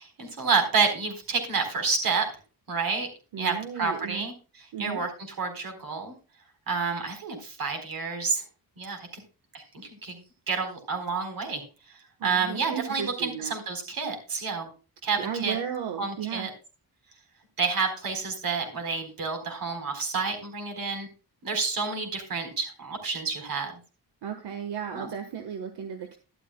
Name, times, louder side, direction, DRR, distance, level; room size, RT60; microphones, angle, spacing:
voice 1, 0.0-2.2 2.7-3.1 3.4-4.3 4.8-5.1 5.4-6.1 6.7-8.4 8.8-9.2 9.5-10.2 10.5-11.6 12.2-14.7 15.0-15.6 16.0-16.5 17.6-21.1 21.4-23.7 24.9-25.1, right 4 dB, 60° right, 5 dB, 4.1 m, -29 dB
voice 2, 3.3-4.3 4.7-5.0 12.2-13.5 15.2-16.5 24.2-26.2, right 8 dB, 85° right, 6 dB, 1.4 m, -34 dB
12.5 x 12.0 x 2.2 m, 0.33 s
wide cardioid pair, 175°, 39 cm